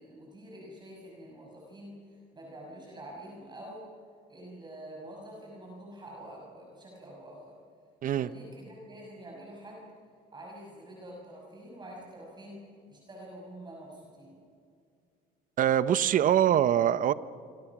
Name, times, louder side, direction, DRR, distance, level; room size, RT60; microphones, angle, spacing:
voice 1, 0.0-3.9 4.3-7.6 8.1-9.9 10.3-14.4, right 1 dB, 25° right, 6.2 m, -47 dB
voice 2, 15.6-17.1, right 10 dB, 50° right, 0.9 m, -23 dB
27.0 x 26.0 x 6.1 m
cardioid pair, 110°, 17 cm